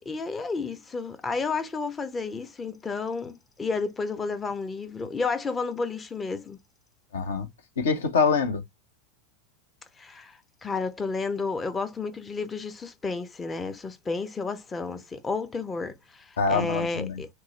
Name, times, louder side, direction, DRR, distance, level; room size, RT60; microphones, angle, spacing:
voice 1, 0.1-6.6 10.0-17.3, left 4 dB, 20° left, 0.5 m, -31 dB
voice 2, 7.1-7.5 7.8-8.6 16.4-17.2, left 5 dB, 65° left, 0.7 m, -25 dB
4.5 x 2.0 x 2.9 m
figure-of-eight pair, 85°, 0 cm